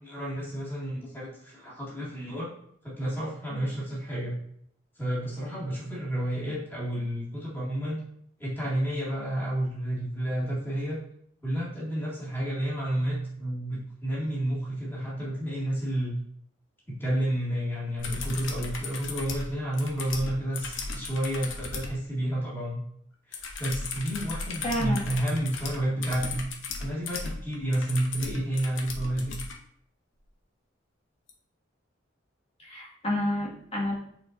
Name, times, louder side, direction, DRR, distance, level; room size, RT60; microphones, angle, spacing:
voice 1, 0.0-2.5 2.8-4.4 5.0-8.0 8.4-11.0 11.4-16.2 16.9-22.8 23.3-26.4 26.8-29.3, right 1 dB, 10° left, -7 dB, 2.1 m, -30 dB
sound 1, 18.0-22.0 23.3-29.6 31.3-31.4, left 3 dB, 80° left, 0.9 m, -36 dB
voice 2, 24.6-25.1 32.6-33.9, left 1 dB, 30° left, -5 dB, 1.8 m, -29 dB
8.1 x 4.5 x 2.6 m, 0.67 s
head